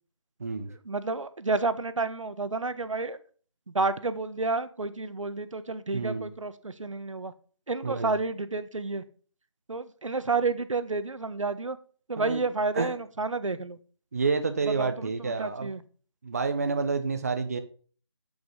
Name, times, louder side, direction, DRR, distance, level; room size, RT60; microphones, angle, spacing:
voice 1, 0.8-3.2 3.7-7.3 7.7-9.0 9.7-11.8 12.1-13.8 14.8-15.8, right 3 dB, 80° right, 12 dB, 1.4 m, -30 dB
voice 2, 5.9-6.3 7.8-8.1 12.2-12.4 12.7-12.9 14.1-15.7 16.2-17.6, right 4 dB, 30° right, 8 dB, 0.8 m, -29 dB
8.5 x 8.5 x 5.6 m, 0.42 s
figure-of-eight pair, 175°, 16 cm